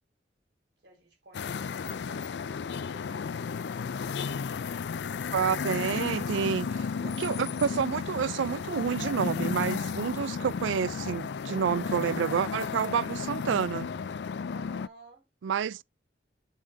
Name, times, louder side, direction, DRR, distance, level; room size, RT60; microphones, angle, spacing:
voice 1, 0.8-3.6 5.3-6.0 14.5-15.3, right 3 dB, 65° right, 4.4 m, -54 dB
sound 1, 1.3-14.9, left 5 dB, 65° left, 0.4 m, -33 dB
voice 2, 5.3-13.9 15.4-15.8, right 7 dB, 85° right, 0.3 m, -29 dB
7.4 x 7.1 x 2.7 m
head